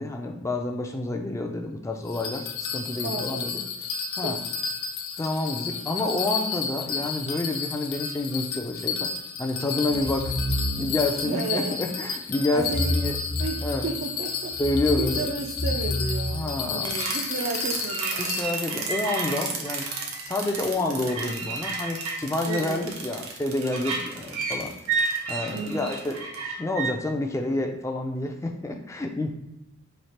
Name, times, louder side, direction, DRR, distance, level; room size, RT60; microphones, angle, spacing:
voice 1, 0.0-3.6 4.2-4.4 5.2-9.1 9.4-10.3 10.8-13.2 13.6-13.8 14.6-15.3 16.3-16.9 18.2-19.9 20.3-24.7 25.3-26.3 26.6-29.3, left 2 dB, 15° left, 3 dB, 0.3 m, -28 dB
Bell, 2.1-18.4, left 6 dB, 75° left, 0.5 m, -32 dB
voice 2, 3.0-3.5 4.2-4.3 9.8-10.0 11.1-11.8 12.5-13.1 13.4-14.5 15.0-18.5 20.7-21.4 22.4-23.0 25.5-25.9, right 4 dB, 55° right, 0 dB, 0.4 m, -33 dB
sound 1, 9.9-11.2 12.6-14.0 14.5-17.0, equal, 60° left, 0.9 m, -30 dB
sound 2, 16.8-26.9, right 4 dB, 80° right, 0.8 m, -31 dB
3.2 x 2.8 x 4.2 m, 0.87 s
head